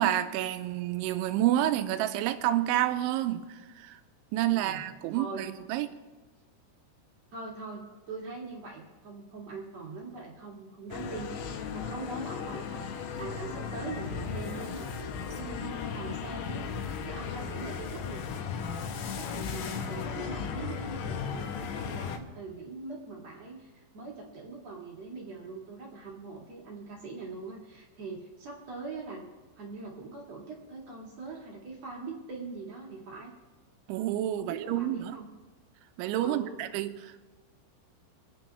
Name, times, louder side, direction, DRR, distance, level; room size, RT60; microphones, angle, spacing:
voice 1, 0.0-4.0 4.3-5.9 33.9-35.2 36.0-37.2, right 13 dB, 80° right, 10 dB, 3.0 m, -29 dB
voice 2, 4.5-5.4 7.3-14.9 15.3-16.7 17.0-18.3 19.2-29.3 29.6-33.3 34.4-35.3 36.2-36.6, right 3 dB, 50° right, -2 dB, 2.3 m, -42 dB
sound 1, 10.9-22.2, left 6 dB, 80° left, 3.1 m, -36 dB
26.0 x 9.2 x 3.4 m, 1.2 s
omnidirectional pair, 5.5 m